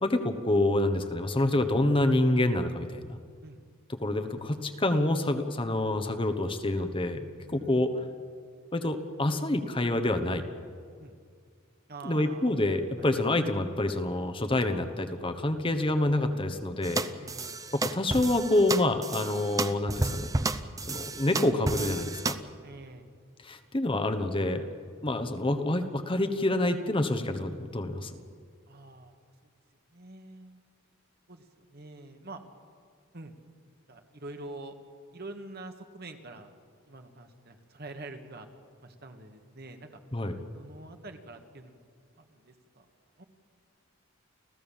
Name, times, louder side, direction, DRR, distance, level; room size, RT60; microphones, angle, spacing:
voice 1, 0.0-3.0 3.9-7.9 8.7-10.4 12.0-17.0 17.7-20.3 20.9-22.4 23.4-24.6 25.0-28.1 40.1-40.4, left 1 dB, 25° left, 7 dB, 1.1 m, -27 dB
voice 2, 7.4-8.0 11.0-11.1 11.9-12.7 13.0-13.1 17.2-17.6 22.6-23.1 24.0-24.1 24.9-25.2 28.7-29.2 29.9-30.6 31.3-32.4 33.1-33.3 33.9-34.8 35.1-36.5 36.9-38.5 38.8-39.9 40.5-41.8 42.2-42.9 43.2-43.3, right 2 dB, 50° right, 5 dB, 1.8 m, -46 dB
sound 1, 16.8-22.3, right 3 dB, 15° right, 0.7 m, -32 dB
30.0 x 14.5 x 7.3 m, 2.1 s
head